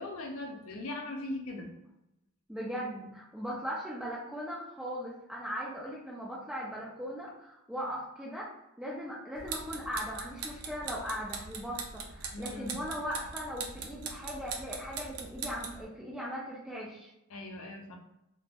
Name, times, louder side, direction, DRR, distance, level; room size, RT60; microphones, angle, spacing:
voice 1, 0.0-1.7 12.3-12.8 17.3-18.0, left 2 dB, 65° left, 2 dB, 0.5 m, -39 dB
voice 2, 2.5-8.5 8.8-17.1, equal, 5° right, -6 dB, 0.4 m, -39 dB
sound 1, 9.4-15.8, right 5 dB, 75° right, 0.4 m, -41 dB
2.4 x 2.0 x 3.4 m, 0.85 s
head